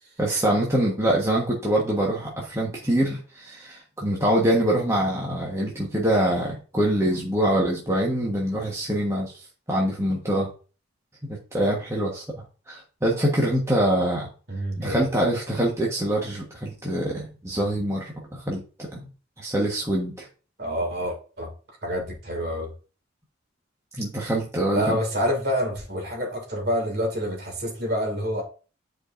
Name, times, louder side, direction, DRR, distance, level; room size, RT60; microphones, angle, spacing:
voice 1, 0.2-9.3 9.7-10.5 11.2-12.2 12.7-14.3 14.8-19.1 19.4-20.3 24.0-25.0, right 1 dB, 15° right, -3 dB, 1.3 m, -24 dB
voice 2, 14.5-15.0 20.6-21.5 21.8-22.7 24.7-28.4, equal, 55° right, 1 dB, 2.4 m, -27 dB
9.7 x 4.7 x 2.6 m, 0.36 s
head